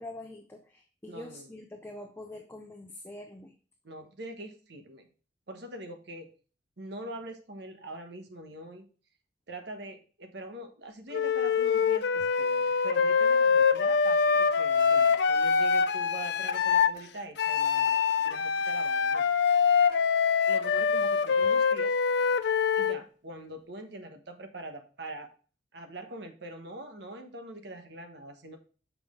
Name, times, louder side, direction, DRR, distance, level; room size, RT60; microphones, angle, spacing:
voice 1, 0.0-3.5, left 1 dB, 10° left, 2 dB, 0.6 m, -45 dB
voice 2, 1.1-1.5 3.8-5.1 5.5-6.3 6.8-8.9 9.5-19.3 20.5-21.9 22.7-25.3 25.7-28.6, right 1 dB, 60° right, 5 dB, 1.1 m, -43 dB
Wind instrument woodwind instrument, 11.1-17.0 17.4-23.0, left 6 dB, 60° left, 0.4 m, -24 dB
6.2 x 5.6 x 3.7 m, 0.38 s
head